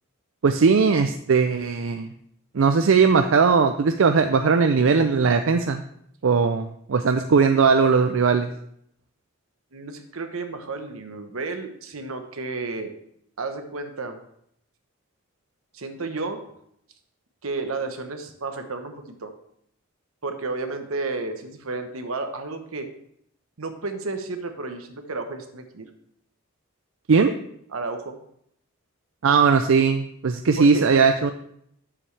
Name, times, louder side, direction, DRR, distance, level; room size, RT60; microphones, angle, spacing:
voice 1, 0.4-2.1 2.5-5.8 6.2-8.5 27.1-27.3 29.2-31.3, right 5 dB, 70° right, 7 dB, 0.4 m, -19 dB
voice 2, 9.7-12.9 13.4-14.2 15.7-16.4 17.4-19.3 20.2-22.9 23.6-25.9 27.7-28.2 30.6-30.8, right 3 dB, 85° right, 7 dB, 1.1 m, -32 dB
10.0 x 7.1 x 3.3 m, 0.71 s
head